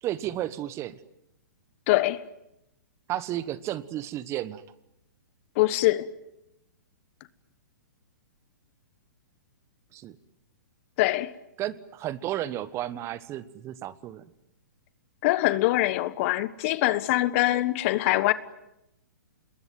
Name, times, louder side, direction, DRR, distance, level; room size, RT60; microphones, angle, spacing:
voice 1, 0.0-1.0 3.1-4.6 9.9-10.2 11.6-14.2, right 13 dB, 30° right, 1.2 m, -33 dB
voice 2, 1.9-2.2 5.6-6.1 11.0-11.3 15.2-18.3, left 17 dB, 45° left, 1.3 m, -23 dB
27.0 x 21.5 x 9.5 m
hypercardioid pair, 125°, 10 cm